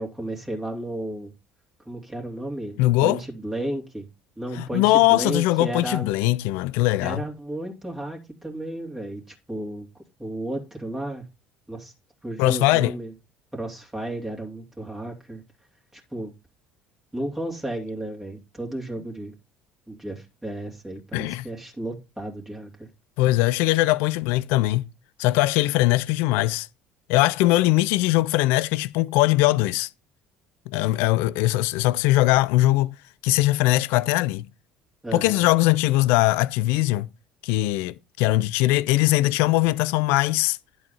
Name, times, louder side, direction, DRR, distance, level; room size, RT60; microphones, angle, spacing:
voice 1, 0.0-1.3 1.9-4.1 4.4-6.1 7.0-9.9 10.2-11.2 11.7-11.9 12.2-13.1 13.5-15.4 15.9-16.3 17.1-19.3 19.9-22.9 35.0-35.4, right 1 dB, 10° right, 2.8 m, -33 dB
voice 2, 2.8-3.2 4.5-7.2 12.4-12.9 21.1-21.4 23.2-24.9 25.2-26.7 27.1-29.9 30.7-33.0 33.2-34.5 35.1-37.1 37.4-40.6, left 18 dB, 65° left, 0.5 m, -21 dB
11.0 x 4.7 x 5.6 m
figure-of-eight pair, 60°, 4 cm